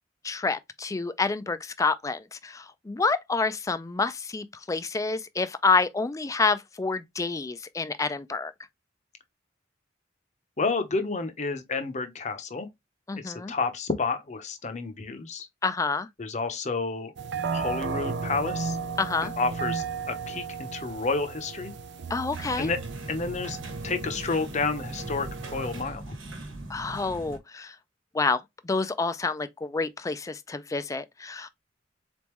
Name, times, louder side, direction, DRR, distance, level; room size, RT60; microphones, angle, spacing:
voice 1, 0.2-8.5 13.1-13.5 15.6-16.1 19.0-19.3 22.1-22.7 26.7-27.7 28.1-28.4 28.6-31.5, left 4 dB, 15° left, 0.3 m, -28 dB
voice 2, 10.6-12.7 13.2-15.5 16.2-17.1 17.5-18.8 19.4-21.7 22.6-22.8 23.1-23.6 23.8-26.1, left 3 dB, 40° left, 0.7 m, -30 dB
sound 1, 17.2-25.8, right 5 dB, 60° right, 0.5 m, -35 dB
sound 2, 22.3-27.4, right 2 dB, 85° right, 1.2 m, -40 dB
4.0 x 3.5 x 3.0 m
head